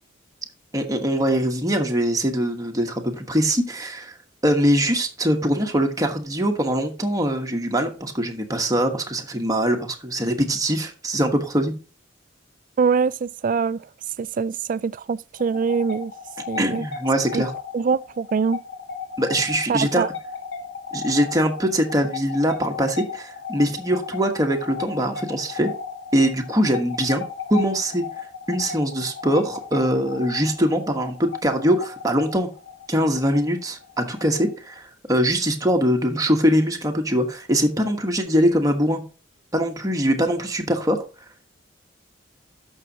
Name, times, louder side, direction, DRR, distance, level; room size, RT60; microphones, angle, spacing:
voice 1, 0.7-4.1 4.4-11.7 16.6-17.5 19.2-20.0 20.9-25.7 26.1-27.2 27.5-28.1 28.5-32.5 32.9-34.8 35.1-39.0 39.5-41.0, equal, 20° right, 1.2 m, -22 dB
voice 2, 12.8-13.9 14.2-16.1 16.5-16.9 17.3-17.4 17.7-18.6 19.7-20.1, right 5 dB, 45° right, 0.3 m, -23 dB
sound 1, 15.4-34.8, left 6 dB, 75° left, 1.7 m, -36 dB
13.0 x 6.4 x 2.9 m
head